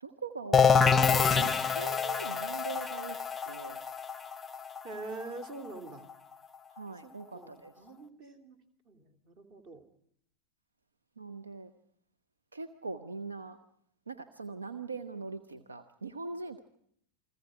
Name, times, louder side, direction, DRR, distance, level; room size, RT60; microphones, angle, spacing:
voice 1, 0.0-3.2 3.5-3.8 6.7-7.7 11.2-11.7 12.5-13.6 14.1-16.6, right 4 dB, 75° right, 12 dB, 1.0 m, -42 dB
sound 1, 0.5-6.1, left 6 dB, 10° left, 0.8 m, -27 dB
voice 2, 4.8-6.1 7.0-8.6 8.8-9.8, right 3 dB, 40° right, 11 dB, 2.8 m, -45 dB
29.0 x 21.5 x 5.0 m, 0.69 s
figure-of-eight pair, 90°, 0 cm